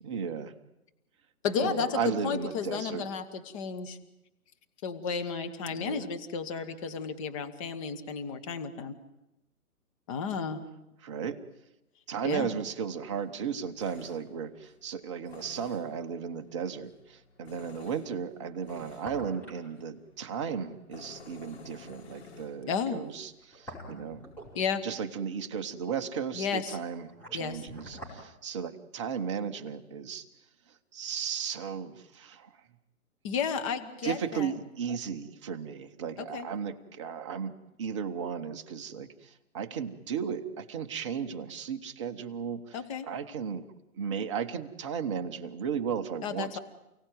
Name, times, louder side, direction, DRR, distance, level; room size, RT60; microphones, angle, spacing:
voice 1, 0.0-0.5 1.6-3.1 5.7-6.1 11.0-11.4 12.1-24.2 24.8-30.3 30.7-32.6 34.0-43.7 43.9-46.6, right 7 dB, 20° right, 6 dB, 1.0 m, -35 dB
voice 2, 1.4-4.0 4.8-8.9 10.1-10.6 12.2-12.5 22.7-23.0 24.5-24.8 26.3-26.8 27.3-27.6 33.2-34.5 36.2-36.5 42.7-43.1 46.2-46.6, left 6 dB, 20° left, 7 dB, 1.4 m, -33 dB
Tools, 12.2-26.3, left 4 dB, 45° left, 3.2 m, -55 dB
sound 1, 15.5-15.6 18.6-19.7 20.0-20.1 23.2-25.0 26.7-28.2 28.5-28.6, equal, 5° left, 5.0 m, -45 dB
29.5 x 17.5 x 9.4 m, 0.93 s
hypercardioid pair, 150°, 45 cm